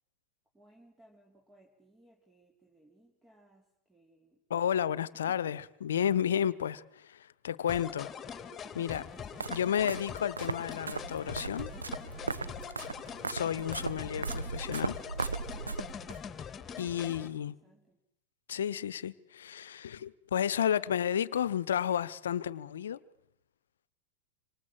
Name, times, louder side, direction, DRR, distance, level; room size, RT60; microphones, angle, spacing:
voice 1, 0.5-4.4 16.6-16.9 17.2-18.0, right 1 dB, 10° right, 3.8 m, -63 dB
voice 2, 4.5-8.1 8.7-9.1 9.5-11.7 13.3-15.0 16.8-17.6 18.5-23.0, left 9 dB, 65° left, 1.1 m, -32 dB
sound 1, 7.7-17.3, left 7 dB, 20° left, 2.8 m, -43 dB
sound 2, 8.9-16.2, right 4 dB, 75° right, 1.0 m, -38 dB
27.0 x 26.5 x 7.6 m
figure-of-eight pair, 90°, 0 cm